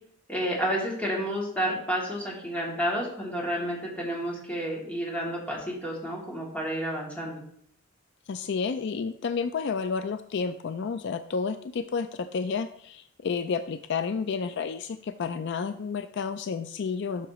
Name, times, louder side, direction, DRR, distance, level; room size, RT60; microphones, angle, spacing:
voice 1, 0.3-7.4, equal, 5° left, -4 dB, 2.6 m, -30 dB
voice 2, 8.3-17.3, left 5 dB, 60° left, 10 dB, 0.4 m, -31 dB
12.5 x 5.8 x 3.1 m, 0.65 s
head